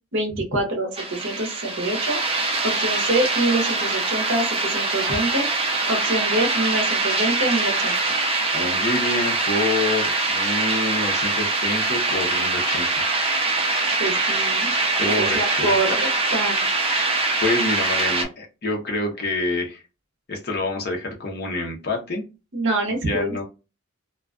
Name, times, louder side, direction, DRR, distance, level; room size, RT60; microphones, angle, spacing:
voice 1, 0.1-2.2 2.6-5.4 5.9-7.9 14.0-14.7 15.1-16.7 22.5-23.4, right 2 dB, 55° right, 3 dB, 0.7 m, -25 dB
sound 1, 0.9-18.2, right 3 dB, 25° right, 0.4 m, -23 dB
voice 2, 8.5-13.1 15.0-15.7 16.9-19.8 20.3-22.2 22.9-23.4, left 2 dB, 45° left, 0 dB, 0.7 m, -27 dB
2.3 x 2.2 x 2.3 m, 0.29 s
head